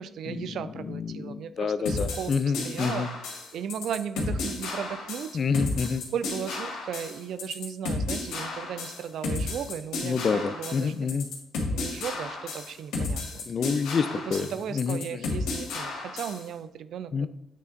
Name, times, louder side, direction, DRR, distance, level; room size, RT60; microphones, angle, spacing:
voice 1, 0.0-2.3 2.6-5.4 6.1-11.1 11.7-13.4 14.3-17.3, right 8 dB, 70° right, 14 dB, 0.3 m, -36 dB
voice 2, 0.9-3.1 5.3-6.0 10.0-11.3 13.5-14.5 14.7-15.3 17.1-17.3, left 5 dB, 45° left, 13 dB, 0.4 m, -28 dB
sound 1, 1.9-16.4, left 3 dB, 85° left, 1.6 m, -33 dB
8.3 x 3.3 x 3.8 m, 0.85 s
cardioid pair, 90°, 0 cm